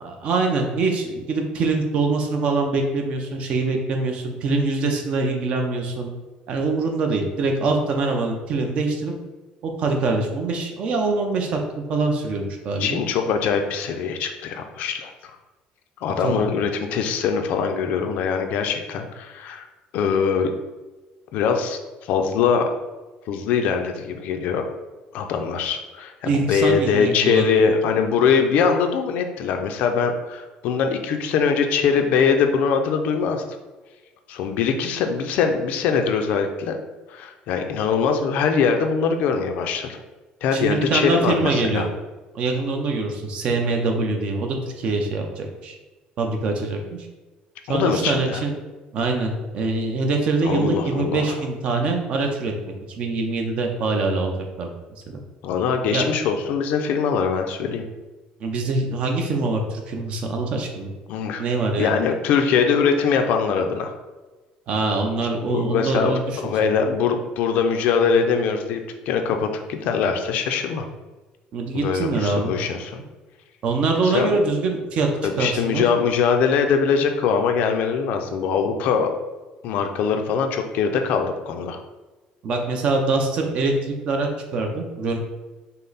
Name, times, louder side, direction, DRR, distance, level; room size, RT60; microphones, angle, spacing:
voice 1, 0.0-6.1 6.5-9.1 9.6-13.0 16.2-16.4 26.2-27.6 40.5-41.9 42.3-45.7 46.2-47.1 47.7-48.5 48.9-54.7 55.1-55.2 55.9-56.1 58.4-60.9 61.4-61.9 64.7-66.4 71.5-72.5 73.6-75.1 75.4-75.8 82.4-85.2, right 3 dB, 40° right, 3 dB, 0.6 m, -24 dB
voice 2, 12.8-15.1 16.0-19.6 19.9-20.5 21.3-21.8 22.1-22.7 23.3-24.7 25.1-33.4 34.3-36.8 37.1-40.0 40.4-41.9 47.7-48.4 50.4-51.2 55.4-57.8 61.1-61.4 61.8-63.9 65.5-66.1 66.4-70.9 71.7-73.0 74.0-74.3 75.4-79.1 79.6-81.8, left 6 dB, 60° left, 5 dB, 0.5 m, -22 dB
5.4 x 2.1 x 3.9 m, 1.2 s
cardioid pair, 175°, 3 cm